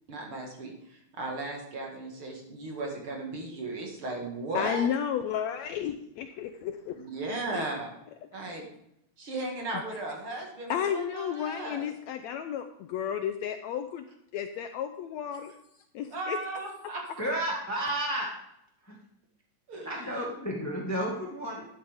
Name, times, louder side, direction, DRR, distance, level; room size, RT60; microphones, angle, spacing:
voice 1, 0.1-4.9 6.9-7.9 8.3-8.6 9.2-11.8 16.1-17.0 19.7-20.2, right 2 dB, 45° right, 0 dB, 2.5 m, -36 dB
voice 2, 4.5-7.0 7.5-7.7 10.7-14.1 14.3-15.6 15.9-16.4, left 9 dB, 75° left, 7 dB, 1.7 m, -32 dB
voice 3, 17.2-18.3 18.8-19.0 19.8-21.6, right 1 dB, 15° left, -2 dB, 0.6 m, -32 dB
12.0 x 11.0 x 3.5 m, 0.77 s
omnidirectional pair, 3.6 m